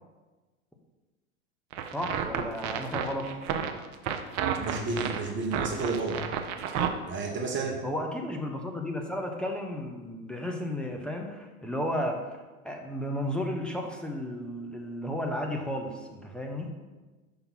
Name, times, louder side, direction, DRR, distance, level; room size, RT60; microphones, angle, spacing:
sound 1, 1.7-6.9, right 8 dB, 45° right, 0.7 m, -31 dB
voice 1, 1.9-3.3 7.8-16.7, left 1 dB, ahead, 1 dB, 0.8 m, -33 dB
voice 2, 4.6-6.2 7.1-7.8, right 3 dB, 25° right, 1 dB, 1.1 m, -31 dB
5.6 x 3.9 x 5.8 m, 1.2 s
hypercardioid pair, 95°, 41 cm